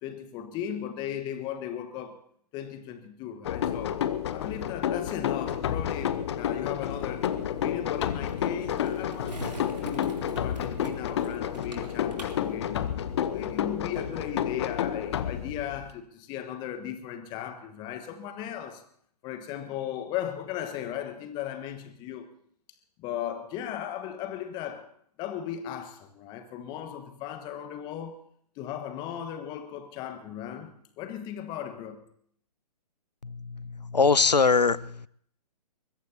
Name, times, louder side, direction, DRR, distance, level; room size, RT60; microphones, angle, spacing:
voice 1, 0.0-2.2 2.5-4.0 4.3-9.4 9.8-18.8 19.2-22.3 23.0-24.9 25.2-28.2 28.6-32.1, left 10 dB, 20° left, 1.4 m, -37 dB
sound 1, 3.4-15.9, left 9 dB, 40° left, 0.9 m, -30 dB
Skateboard, 5.4-13.4, right 1 dB, 80° right, 3.3 m, -45 dB
voice 2, 33.2-35.1, left 4 dB, 85° left, 0.7 m, -23 dB
23.5 x 21.5 x 2.8 m
figure-of-eight pair, 125°, 21 cm